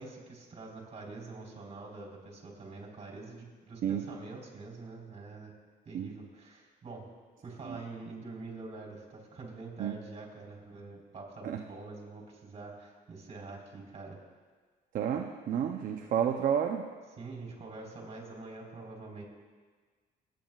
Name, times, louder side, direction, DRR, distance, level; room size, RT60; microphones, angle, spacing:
voice 1, 0.0-5.5 5.9-7.1 7.4-14.2 17.2-19.2, right 3 dB, 35° right, -2 dB, 3.8 m, -45 dB
voice 2, 14.9-16.9, right 8 dB, 55° right, 3 dB, 0.7 m, -30 dB
26.5 x 9.2 x 2.4 m, 1.5 s
cardioid pair, 110°, 17 cm